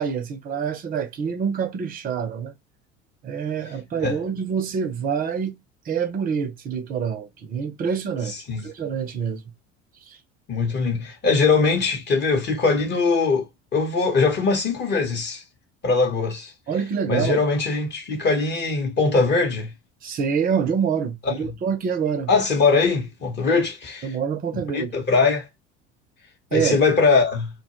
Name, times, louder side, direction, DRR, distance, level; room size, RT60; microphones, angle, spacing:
voice 1, 0.0-2.5 3.2-5.6 5.9-8.3 8.6-9.4 10.1-10.2 16.7-17.4 20.0-22.3 23.5-23.6 24.0-24.9 26.5-26.8, right 7 dB, 25° right, 0.5 m, -26 dB
voice 2, 8.3-8.7 10.5-15.4 15.8-16.5 17.1-19.7 21.2-21.4 22.3-24.1 24.7-25.5 26.5-27.5, left 4 dB, 30° left, 0.7 m, -21 dB
2.1 x 2.1 x 2.8 m
figure-of-eight pair, 65°, 38 cm